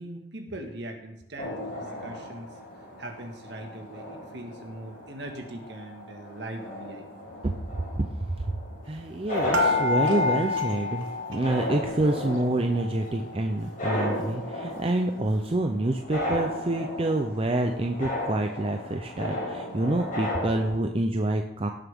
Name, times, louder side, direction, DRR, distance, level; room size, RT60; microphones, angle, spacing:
voice 1, 0.0-1.7 2.0-2.5 3.0-7.3, right 1 dB, 60° right, 3 dB, 1.8 m, -40 dB
sound 1, 1.4-20.8, left 1 dB, 45° left, 4.8 m, -35 dB
voice 2, 8.9-21.7, right 1 dB, 30° right, 4 dB, 0.6 m, -27 dB
sound 2, 9.5-12.1 12.4-13.4 13.9-14.0 14.2-14.3, left 3 dB, 90° right, 1.2 m, -28 dB
17.0 x 7.4 x 3.6 m, 0.79 s
head